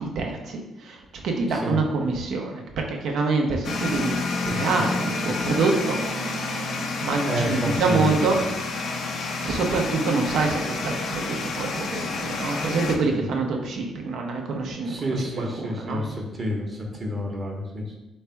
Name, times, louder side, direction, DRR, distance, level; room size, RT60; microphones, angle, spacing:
voice 1, 0.0-6.0 6.3-6.5 7.0-8.4 9.4-16.0, right 3 dB, 75° right, 1 dB, 0.8 m, -26 dB
sound 1, 3.6-13.0, left 3 dB, 70° left, 0.6 m, -29 dB
voice 2, 7.2-8.2 13.0-13.3 14.9-18.0, equal, 35° right, 1 dB, 1.0 m, -29 dB
3.4 x 3.2 x 4.5 m, 0.98 s
cardioid pair, 90°, 0 cm